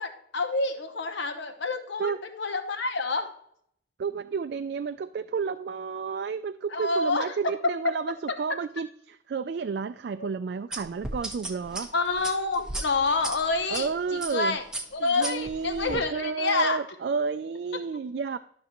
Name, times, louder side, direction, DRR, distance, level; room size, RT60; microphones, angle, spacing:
voice 1, 0.0-3.3 6.7-7.4 10.2-10.3 11.9-14.6 14.9-16.8, left 3 dB, 70° left, 7 dB, 0.9 m, -28 dB
voice 2, 4.0-11.9 13.7-14.6 15.0-18.4, right 5 dB, 55° right, 9 dB, 0.3 m, -31 dB
sound 1, 10.7-13.8 14.2-14.4 14.7-16.0, right 1 dB, 5° right, 1.1 m, -35 dB
12.5 x 6.1 x 3.0 m, 0.68 s
head